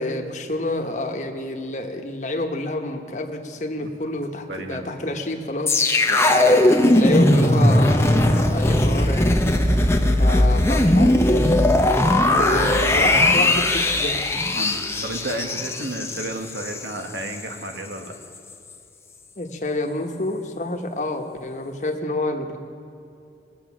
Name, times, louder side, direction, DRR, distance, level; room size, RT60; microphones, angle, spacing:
voice 1, 0.0-5.9 6.6-9.3 10.2-11.5 12.3-14.2 19.4-22.6, left 1 dB, 40° left, 4 dB, 1.0 m, -28 dB
voice 2, 4.5-4.9 6.1-6.5 10.3-10.5 12.3-13.3 14.6-18.1, right 1 dB, 80° right, 4 dB, 1.3 m, -32 dB
sound 1, 5.7-16.8 17.2-17.3, left 1 dB, 15° left, 0.6 m, -18 dB
20.5 x 7.6 x 6.1 m, 2.6 s
head